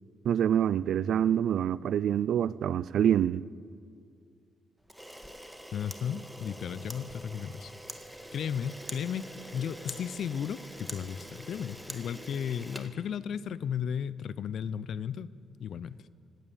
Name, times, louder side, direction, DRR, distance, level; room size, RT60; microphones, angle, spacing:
voice 1, 0.2-3.4, right 9 dB, 70° right, 0.3 m, -26 dB
Camera, 4.9-13.6, equal, 5° right, 1.7 m, -45 dB
voice 2, 5.7-7.7 8.3-9.3 9.5-15.3 15.6-16.0, left 8 dB, 65° left, 0.5 m, -34 dB
17.5 x 9.0 x 8.9 m
hypercardioid pair, 50°, 0 cm